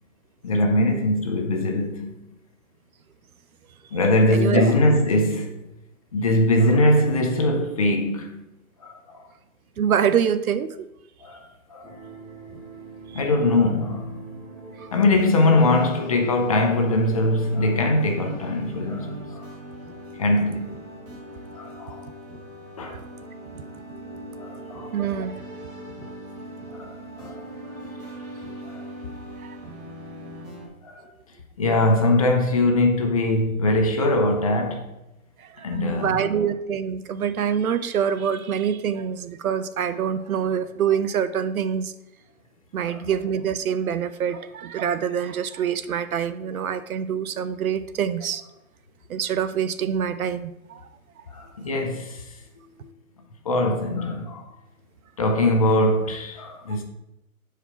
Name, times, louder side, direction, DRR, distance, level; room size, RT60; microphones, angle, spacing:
voice 1, 0.4-2.1 3.9-5.5 6.1-8.3 8.8-9.2 11.2-11.4 11.7-11.9 13.1-14.1 14.9-19.4 20.2-20.8 21.5-22.0 22.8-23.0 24.4-24.9 26.7-26.9 27.2-27.4 28.7-28.8 30.8-31.0 31.6-34.9 35.6-36.2 42.8-43.0 51.3-52.2 53.5-54.5 55.2-56.8, left 1 dB, 25° left, 0.6 m, -21 dB
voice 2, 4.3-4.7 9.8-10.9 13.1-13.3 14.8-14.9 22.9-23.0 24.9-25.4 29.4-29.6 35.4-41.9 42.7-48.4 49.1-50.8, right 8 dB, 75° right, 0.7 m, -25 dB
sound 1, 11.8-30.7, right 1 dB, 20° right, 1.6 m, -40 dB
6.7 x 5.0 x 4.3 m
hypercardioid pair, 155°, 42 cm